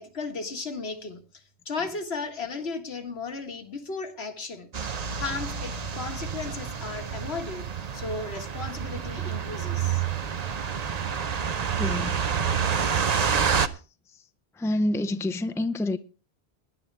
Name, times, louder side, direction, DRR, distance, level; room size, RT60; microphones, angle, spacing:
voice 1, 0.0-4.7 5.2-7.7 7.9-10.0, left 4 dB, 70° left, 1.9 m, -35 dB
sound 1, 4.7-13.7, right 7 dB, 45° right, 0.8 m, -28 dB
voice 2, 11.8-12.2 14.6-16.0, left 1 dB, 5° left, 0.5 m, -27 dB
19.0 x 10.5 x 3.3 m
omnidirectional pair, 1.1 m